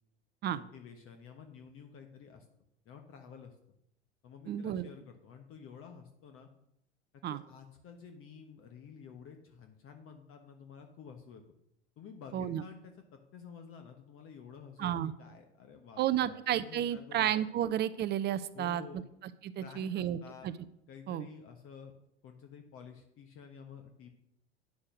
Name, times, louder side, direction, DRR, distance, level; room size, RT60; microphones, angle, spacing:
voice 1, 0.5-2.5 2.8-3.5 4.2-6.5 7.1-11.4 12.0-17.3 18.5-19.0 19.6-20.5 20.9-21.9 22.2-24.1, left 6 dB, 40° left, 5 dB, 1.2 m, -51 dB
voice 2, 4.5-4.9 7.2-7.4 12.3-12.6 14.8-15.1 16.0-18.8 19.4-20.2 20.4-20.5 21.1-21.3, right 11 dB, 30° right, 15 dB, 0.5 m, -32 dB
9.4 x 6.4 x 6.1 m, 0.77 s
figure-of-eight pair, 85°, 34 cm